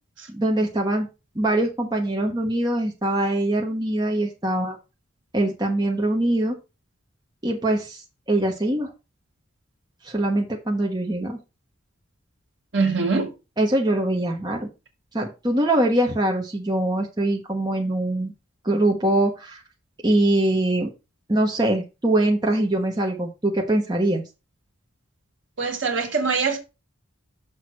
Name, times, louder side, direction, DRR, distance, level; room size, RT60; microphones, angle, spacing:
voice 1, 0.3-1.1 1.3-4.8 5.3-6.6 7.4-8.0 8.3-8.9 10.0-11.4 13.6-14.7 15.1-18.3 18.6-19.6 20.0-20.9 21.3-24.2, right 1 dB, 20° right, 1.0 m, -23 dB
voice 2, 12.7-13.3 25.6-26.6, right 4 dB, 65° right, 1.8 m, -23 dB
6.3 x 3.6 x 5.9 m
head